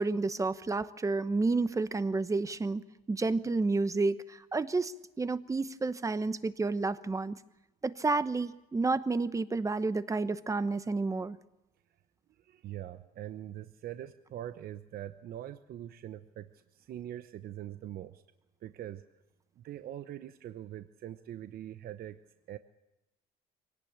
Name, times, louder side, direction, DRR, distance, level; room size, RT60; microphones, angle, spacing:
voice 1, 0.0-2.8 3.1-7.4 7.8-11.4, right 3 dB, 20° right, 13 dB, 1.1 m, -30 dB
voice 2, 12.4-18.2 18.6-19.0 19.6-22.2 22.5-22.6, right 12 dB, 60° right, 11 dB, 0.9 m, -43 dB
24.0 x 18.0 x 8.8 m, 0.99 s
cardioid pair, 110°, 17 cm